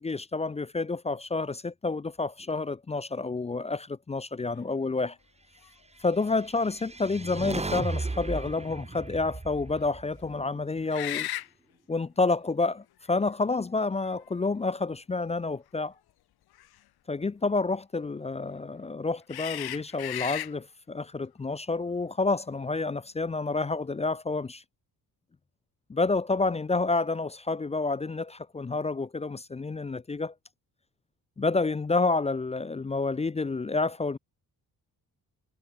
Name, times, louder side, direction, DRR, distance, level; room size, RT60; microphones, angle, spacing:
voice 1, 0.0-5.2 6.0-11.3 11.9-15.9 17.1-24.6 25.9-30.3 31.4-34.2, left 3 dB, 20° left, 0.5 m, -29 dB
sound 1, 5.6-5.7 6.2-6.4 10.9-11.5 12.7-12.8 13.8-14.6 16.5-16.7 19.3-20.5, left 13 dB, 90° left, 2.4 m, -35 dB
sound 2, 6.4-10.7, right 3 dB, 15° right, 4.3 m, -36 dB
cardioid pair, 120°, 36 cm